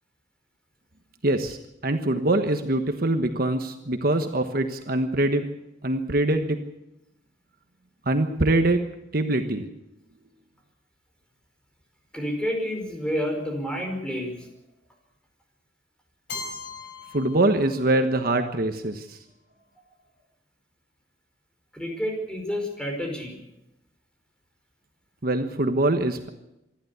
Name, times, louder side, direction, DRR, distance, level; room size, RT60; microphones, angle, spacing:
voice 1, 1.2-1.6 1.8-5.5 5.8-6.6 8.1-8.8 9.1-9.7 17.1-19.2 25.2-26.3, right 2 dB, 50° right, 6 dB, 1.3 m, -23 dB
voice 2, 12.1-14.5 21.7-23.4, equal, 5° left, 2 dB, 5.1 m, -29 dB
Keyboard (musical), 16.3-18.2, left 4 dB, 60° left, 4.7 m, -39 dB
26.5 x 12.0 x 8.2 m, 0.91 s
head